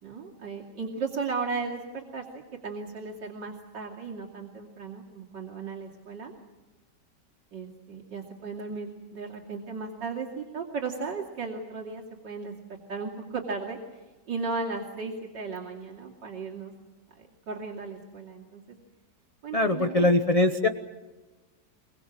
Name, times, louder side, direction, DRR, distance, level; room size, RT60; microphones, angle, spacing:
voice 1, 0.0-2.3 2.6-6.3 7.5-12.5 12.9-14.0 14.3-16.7 17.1-18.6 19.4-20.1, right 4 dB, 80° right, -3 dB, 3.3 m, -35 dB
voice 2, 19.5-20.7, left 2 dB, 25° left, 7 dB, 0.8 m, -22 dB
24.5 x 22.5 x 7.6 m, 1.2 s
omnidirectional pair, 1.9 m